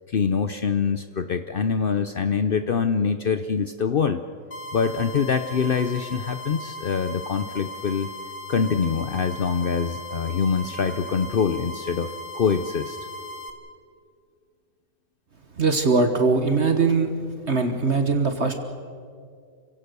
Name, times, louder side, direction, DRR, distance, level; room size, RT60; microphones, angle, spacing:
voice 1, 0.1-4.2 4.7-8.1 8.5-12.1 12.3-13.0, left 6 dB, 80° left, 9 dB, 0.5 m, -24 dB
sound 1, 4.5-13.5, left 1 dB, 30° left, 1.8 m, -38 dB
voice 2, 15.5-17.1 17.5-18.6, right 4 dB, 40° right, 6 dB, 1.5 m, -21 dB
29.0 x 17.0 x 6.9 m, 2.2 s
omnidirectional pair, 1.9 m